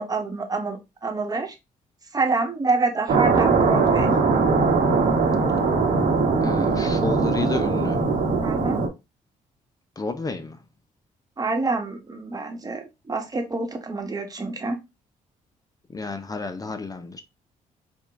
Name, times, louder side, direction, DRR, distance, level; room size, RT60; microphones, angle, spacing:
voice 1, 0.0-1.5 2.1-4.1 8.4-8.8 11.4-14.8, right 3 dB, 25° right, 1.3 m, -27 dB
sound 1, 3.1-8.9, right 4 dB, 70° right, 1.4 m, -21 dB
voice 2, 6.4-8.1 10.0-10.6 15.9-17.2, left 3 dB, 25° left, 0.7 m, -31 dB
5.1 x 2.5 x 3.5 m
cardioid pair, 85°, 14 cm